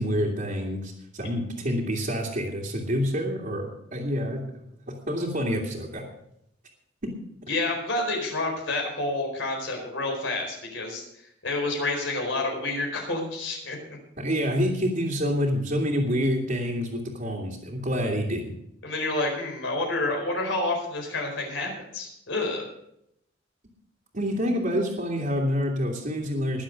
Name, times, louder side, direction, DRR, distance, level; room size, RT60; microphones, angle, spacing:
voice 1, 0.0-4.4 4.9-6.0 7.0-7.2 14.2-18.5 24.1-26.6, equal, 45° right, -5 dB, 2.3 m, -27 dB
voice 2, 7.5-13.8 18.8-22.6, left 2 dB, 70° left, 2 dB, 4.4 m, -29 dB
20.5 x 7.3 x 5.1 m, 0.76 s
head